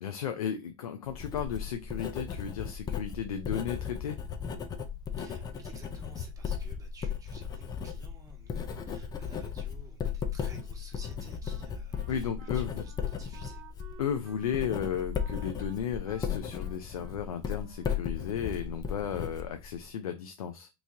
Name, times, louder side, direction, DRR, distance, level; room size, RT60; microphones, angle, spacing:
voice 1, 0.0-4.2 12.1-12.8 14.0-20.7, left 8 dB, 90° left, 0.5 m, -34 dB
Writing, 1.1-19.9, left 7 dB, 20° left, 0.5 m, -36 dB
voice 2, 5.2-13.6, right 2 dB, 20° right, 1.4 m, -54 dB
Wind instrument woodwind instrument, 11.0-18.4, right 6 dB, 40° right, 1.2 m, -55 dB
3.0 x 2.6 x 3.6 m
hypercardioid pair, 105°, 18 cm